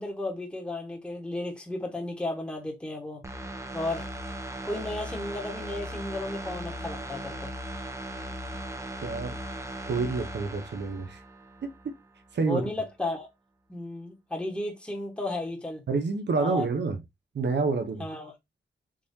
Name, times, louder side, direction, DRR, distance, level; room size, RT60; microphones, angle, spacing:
voice 1, 0.0-3.2 3.7-4.1 4.6-7.5 12.5-13.3 13.7-15.8 16.4-16.7 18.0-18.3, left 2 dB, 5° left, 1.2 m, -34 dB
sound 1, 3.2-11.9 12.3-12.4, right 1 dB, 15° right, 0.7 m, -38 dB
voice 2, 9.0-9.4 9.9-11.2 11.6-11.7 12.3-12.7 15.9-17.0 17.3-18.0, right 4 dB, 65° right, 0.7 m, -28 dB
3.8 x 3.0 x 2.6 m
cardioid pair, 50°, 19 cm